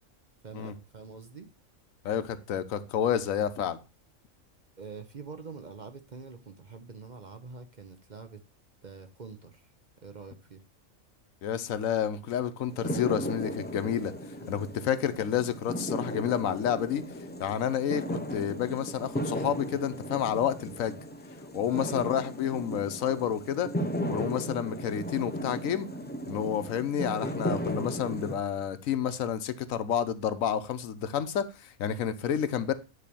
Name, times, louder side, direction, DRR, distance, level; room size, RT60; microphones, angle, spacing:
voice 1, 0.4-1.5 4.8-8.4 8.8-9.7 10.0-10.6 14.2-14.6 21.7-22.0, right 4 dB, 40° right, 0.8 m, -45 dB
voice 2, 2.0-3.8 11.4-14.1 14.5-17.0 17.4-21.0 21.5-23.7 24.1-25.9 26.3-32.7, left 9 dB, 85° left, 1.2 m, -30 dB
sound 1, 12.7-28.4, equal, 15° left, 0.4 m, -36 dB
9.9 x 3.3 x 6.8 m
omnidirectional pair, 1.4 m